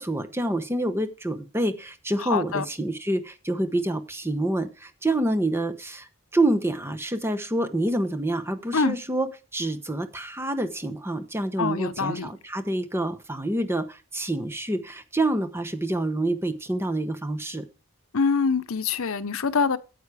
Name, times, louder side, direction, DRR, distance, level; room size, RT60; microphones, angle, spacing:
voice 1, 0.0-17.6, right 1 dB, 10° right, 1.0 m, -27 dB
voice 2, 2.2-2.7 8.7-9.0 11.6-12.3 18.1-19.8, left 5 dB, 75° left, 0.7 m, -25 dB
9.5 x 8.3 x 4.9 m
head